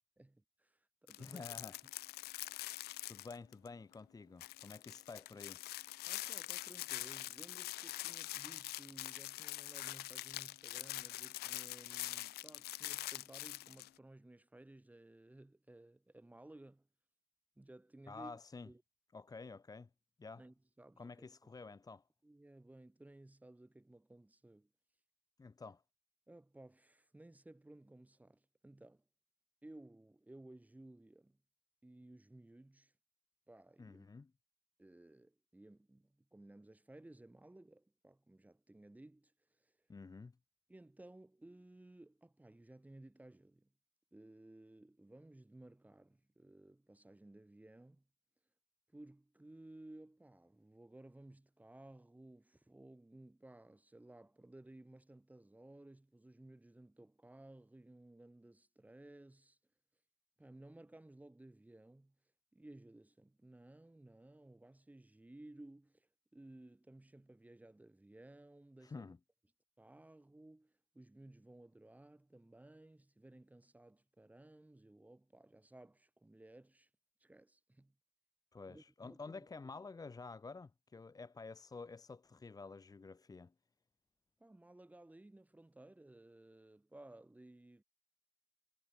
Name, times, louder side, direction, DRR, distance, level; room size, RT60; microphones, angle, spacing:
voice 1, 0.2-1.7 6.1-16.9 17.6-18.4 18.7-18.8 20.4-21.3 22.2-24.7 26.3-29.0 29.6-31.4 31.8-32.9 33.5-34.1 34.8-39.7 40.7-43.7 44.1-48.1 48.9-59.6 60.4-62.2 62.5-69.1 69.8-76.9 77.2-78.0 78.7-79.5 84.4-87.8, right 1 dB, 10° right, 7.9 m, -58 dB
sound 1, 1.1-3.7 3.9-4.0 4.4-13.9, left 17 dB, 70° left, 0.5 m, -44 dB
voice 2, 1.2-1.8 3.0-5.6 18.1-18.7 19.1-19.9 20.2-20.4 21.0-22.0 25.4-25.8 33.8-34.3 39.9-40.3 68.8-69.2 78.5-83.5, left 4 dB, 20° left, 2.1 m, -50 dB
cardioid pair, 110°, 17 cm